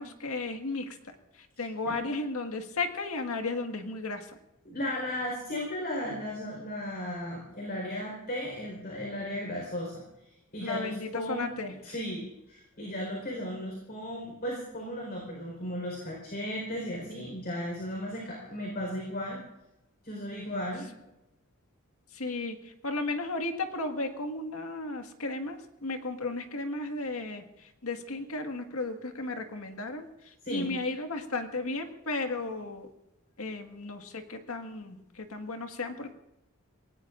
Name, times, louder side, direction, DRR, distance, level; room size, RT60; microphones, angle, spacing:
voice 1, 0.0-4.3 10.6-12.0 22.1-32.9 33.4-36.1, left 3 dB, 85° left, 5 dB, 1.8 m, -35 dB
voice 2, 4.6-10.0 10.5-11.5 11.8-19.4 20.0-20.9 30.4-30.7, equal, 45° left, -1 dB, 4.6 m, -35 dB
28.0 x 18.5 x 2.6 m, 0.88 s
head